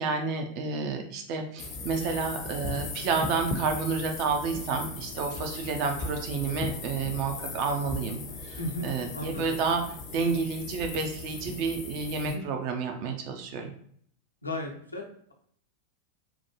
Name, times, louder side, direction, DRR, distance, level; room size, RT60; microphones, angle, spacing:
voice 1, 0.0-9.8 10.1-13.7, right 5 dB, 45° right, 4 dB, 0.5 m, -30 dB
sound 1, 1.6-12.4, left 3 dB, 35° left, 0.6 m, -38 dB
voice 2, 8.5-8.9 9.1-9.6 12.2-12.5 14.4-15.1, left 1 dB, 80° left, 1 dB, 0.6 m, -35 dB
3.7 x 2.2 x 3.0 m, 0.64 s
figure-of-eight pair, 90°, 0 cm